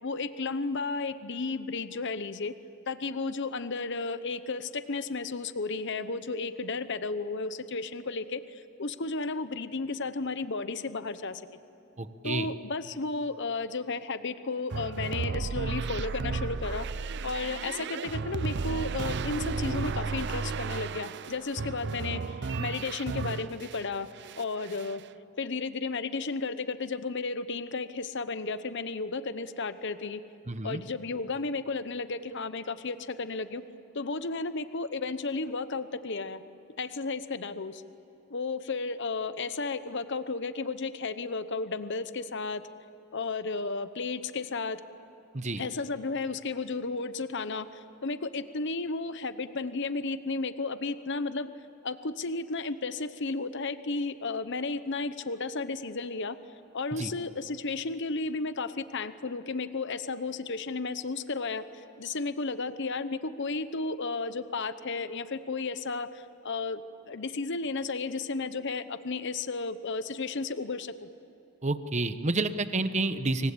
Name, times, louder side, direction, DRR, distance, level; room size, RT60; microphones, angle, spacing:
voice 1, 0.0-2.5 2.9-11.4 12.2-16.9 17.2-24.1 24.4-25.0 25.4-30.2 30.6-33.6 33.9-36.4 36.8-37.8 38.3-42.6 43.1-44.8 45.6-51.5 51.8-56.4 56.7-71.1, left 3 dB, 55° left, 12 dB, 0.9 m, -33 dB
voice 2, 12.0-12.5 30.5-30.8 45.3-45.6 56.9-57.1 71.6-73.5, right 2 dB, 30° right, 10 dB, 1.1 m, -29 dB
sound 1, 14.7-23.9 24.2-25.0, right 4 dB, 50° right, 0.6 m, -33 dB
27.5 x 24.0 x 8.6 m, 3.0 s
head